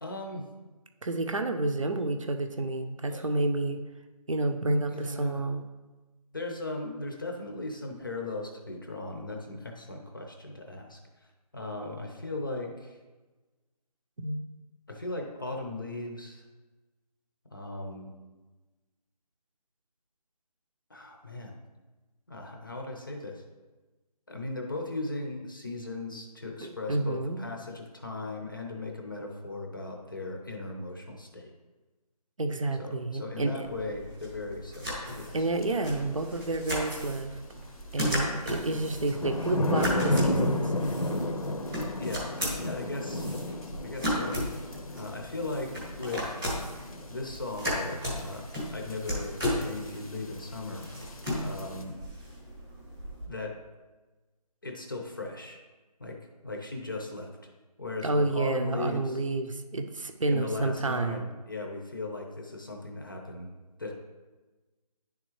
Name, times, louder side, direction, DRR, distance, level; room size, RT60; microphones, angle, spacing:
voice 1, 0.0-0.5 3.1-3.3 4.9-5.4 6.3-11.0 11.5-13.0 14.9-16.4 17.5-18.1 20.9-21.6 22.3-23.4 24.3-31.5 32.8-35.4 42.0-42.3 42.6-43.3 43.8-44.4 45.0-46.3 47.1-50.8 51.4-52.0 53.3-53.6 54.6-55.6 56.0-57.3 57.8-59.2 60.3-63.5 63.8-63.9, left 2 dB, 30° left, 2 dB, 0.7 m, -37 dB
voice 2, 1.0-3.8 4.3-5.6 14.2-14.4 26.6-27.4 32.4-33.7 35.3-37.4 37.9-40.6 58.0-61.2, right 2 dB, 50° right, 6 dB, 0.7 m, -29 dB
sound 1, 33.6-53.3, equal, 5° right, 0.6 m, -36 dB
sound 2, 35.6-35.7 38.0-51.8, left 1 dB, 60° left, 0.8 m, -33 dB
10.5 x 3.6 x 3.1 m, 1.2 s
figure-of-eight pair, 170°, 21 cm